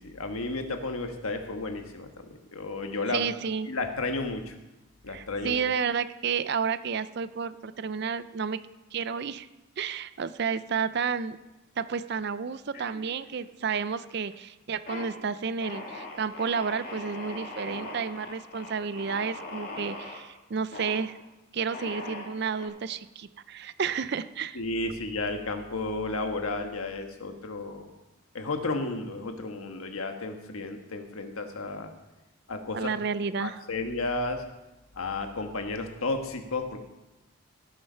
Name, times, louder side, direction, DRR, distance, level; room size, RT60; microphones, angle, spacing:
voice 1, 0.0-3.3 3.7-4.5 5.0-5.6 24.5-27.9 28.3-31.9 32.5-32.8 33.4-34.4 35.0-36.8, left 2 dB, 85° left, 5 dB, 1.4 m, -32 dB
voice 2, 3.1-3.7 5.1-8.6 8.9-9.5 9.8-11.4 11.8-21.2 21.5-24.6 32.7-33.6, right 6 dB, 50° right, 14 dB, 0.4 m, -31 dB
sound 1, 12.7-13.5 13.8-14.3 14.7-15.1 15.6-20.2 20.7-21.1 21.7-22.7, left 2 dB, 45° left, 2.3 m, -40 dB
17.5 x 6.6 x 5.6 m, 1.0 s
head